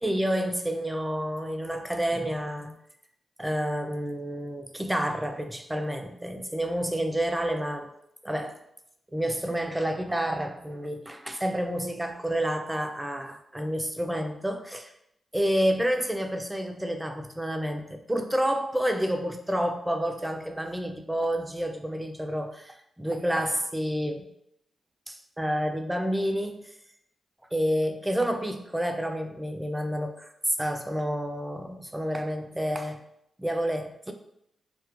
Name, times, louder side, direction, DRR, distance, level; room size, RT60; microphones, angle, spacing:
voice 1, 0.0-2.7 3.4-7.9 8.2-8.6 9.1-14.9 15.3-24.3 25.1-26.7 27.5-33.0 33.4-34.1, equal, 10° right, 5 dB, 0.3 m, -29 dB
2.3 x 2.1 x 2.9 m, 0.78 s
cardioid pair, 65°, 0 cm